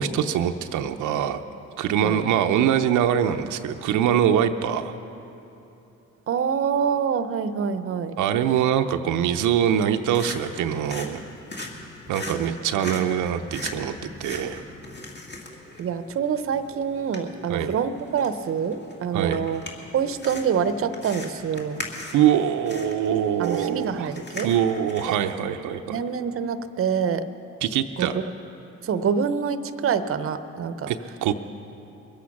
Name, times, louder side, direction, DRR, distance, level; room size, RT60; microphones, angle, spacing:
voice 1, 0.0-1.4 1.8-4.9 8.2-11.2 12.1-14.6 17.5-17.7 19.1-19.5 22.1-24.1 24.4-26.0 27.6-28.2 30.9-31.3, right 9 dB, 85° right, 6 dB, 0.6 m, -23 dB
voice 2, 6.3-8.2 12.3-12.6 15.8-19.6 19.9-21.8 23.4-24.5 25.9-27.3 28.0-28.1 28.8-30.9, right 7 dB, 45° right, 11 dB, 0.7 m, -26 dB
sound 1, 9.7-25.3, left 2 dB, 35° left, 2.2 m, -40 dB
21.5 x 8.5 x 5.9 m, 2.9 s
cardioid pair, 90°, 30 cm